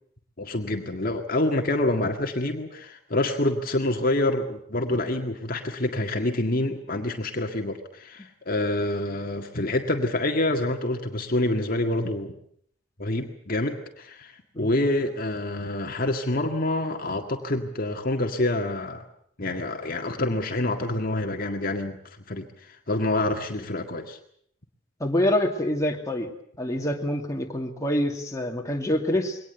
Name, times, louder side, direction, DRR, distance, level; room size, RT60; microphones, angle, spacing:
voice 1, 0.4-12.3 13.0-19.0 19.4-22.0 22.3-24.2, left 1 dB, 50° left, 3 dB, 1.9 m, -27 dB
voice 2, 25.0-26.3 26.6-29.4, left 1 dB, 15° left, 1 dB, 2.5 m, -26 dB
22.5 x 18.5 x 8.0 m, 0.65 s
head